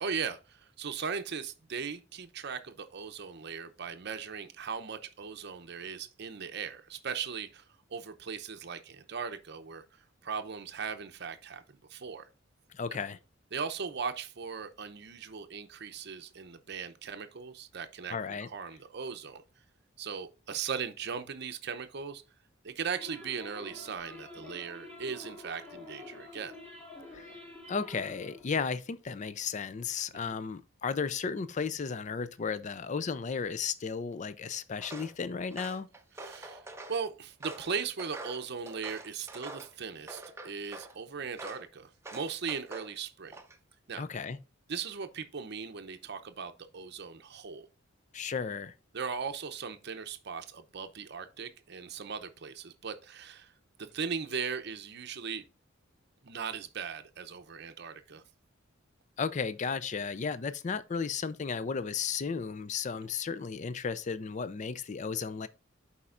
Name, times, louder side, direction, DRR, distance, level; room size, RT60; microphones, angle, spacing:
voice 1, 0.0-7.6 7.9-9.8 10.2-12.3 13.5-19.4 20.0-22.2 22.6-26.5 30.1-30.3 36.2-36.6 36.9-43.4 43.9-44.0 44.7-47.7 48.9-53.5 53.9-55.4 56.2-58.2, right 6 dB, 55° right, 0.7 m, -38 dB
voice 2, 12.7-13.2 18.1-18.5 27.1-27.3 27.7-35.9 44.0-44.4 48.1-48.7 59.2-65.5, left 5 dB, 35° left, 0.4 m, -34 dB
sound 1, 23.0-28.4, left 2 dB, 10° left, 2.1 m, -48 dB
Walk footsteps, 34.8-35.1 35.5-37.0 37.4-39.7 40.1-40.9 41.4-41.7 42.0-42.9 43.3-43.7, right 2 dB, 15° right, 0.7 m, -45 dB
11.0 x 4.2 x 2.4 m
head